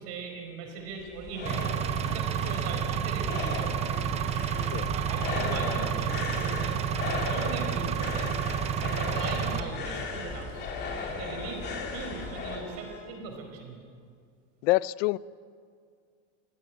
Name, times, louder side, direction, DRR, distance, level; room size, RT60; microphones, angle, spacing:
voice 1, 0.0-1.7 2.1-3.9 4.9-8.4 8.8-13.8, right 4 dB, 45° right, 4.5 m, -40 dB
sound 1, 0.8-12.6, left 4 dB, 30° left, 2.7 m, -36 dB
Engine, 1.5-9.6, right 9 dB, 20° right, 0.5 m, -30 dB
sound 2, 3.2-13.1, right 2 dB, 10° left, 8.0 m, -49 dB
voice 2, 14.6-15.2, left 20 dB, 85° left, 0.6 m, -26 dB
23.5 x 16.0 x 9.1 m
cardioid pair, 175°, 35 cm